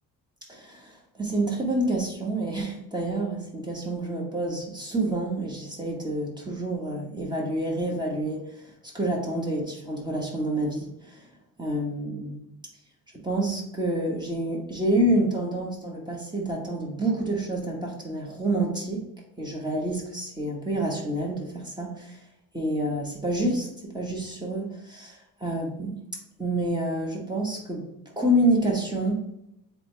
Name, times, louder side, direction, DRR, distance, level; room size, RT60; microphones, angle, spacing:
voice 1, 0.5-8.5 8.8-11.2 11.6-12.4 13.1-19.1 19.4-22.2 22.5-26.0 26.4-27.9 28.2-29.2, right 1 dB, 10° right, -2 dB, 1.3 m, -28 dB
3.8 x 2.5 x 4.5 m, 0.80 s
supercardioid pair, 75°, 38 cm